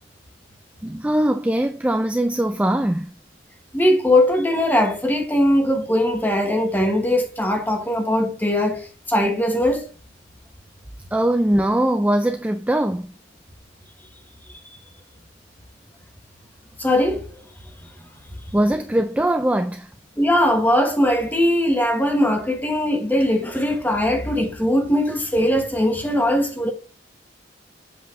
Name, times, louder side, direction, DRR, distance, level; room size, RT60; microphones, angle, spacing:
voice 1, 0.8-3.1 11.1-13.1 18.5-19.9, right 1 dB, 5° right, 0.3 m, -21 dB
voice 2, 3.7-9.9 16.8-17.3 20.2-26.7, left 1 dB, 10° left, 1.3 m, -20 dB
7.9 x 5.0 x 3.7 m
head